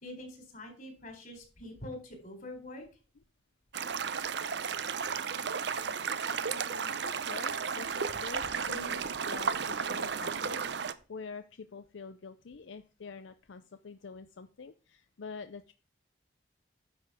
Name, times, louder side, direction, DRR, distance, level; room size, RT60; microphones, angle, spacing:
voice 1, 0.0-2.8, left 1 dB, 45° left, 4 dB, 3.8 m, -45 dB
sound 1, 3.7-10.9, right 6 dB, 60° right, 0.6 m, -33 dB
voice 2, 6.5-15.7, left 4 dB, 75° left, 11 dB, 0.5 m, -46 dB
10.0 x 6.8 x 5.0 m, 0.34 s
head